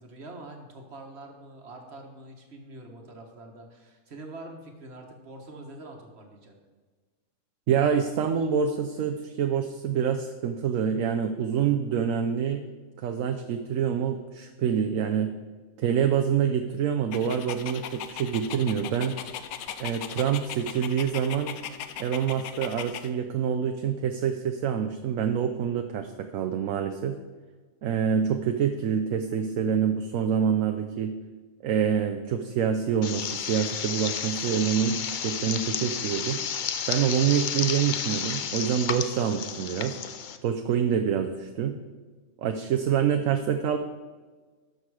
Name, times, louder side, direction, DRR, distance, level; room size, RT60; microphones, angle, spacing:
voice 1, 0.0-6.5, right 2 dB, 50° right, 3 dB, 1.6 m, -45 dB
voice 2, 7.7-12.6 13.0-15.3 15.8-19.2 19.8-21.6 22.0-27.2 27.8-31.1 31.6-36.4 36.9-40.0 40.4-41.8 42.4-43.8, right 8 dB, 70° right, 6 dB, 1.0 m, -26 dB
Dog, 17.1-23.1, left 9 dB, 80° left, 1.1 m, -38 dB
sound 1, 33.0-40.4, left 7 dB, 65° left, 0.4 m, -32 dB
12.0 x 6.4 x 4.8 m, 1.4 s
omnidirectional pair, 1.5 m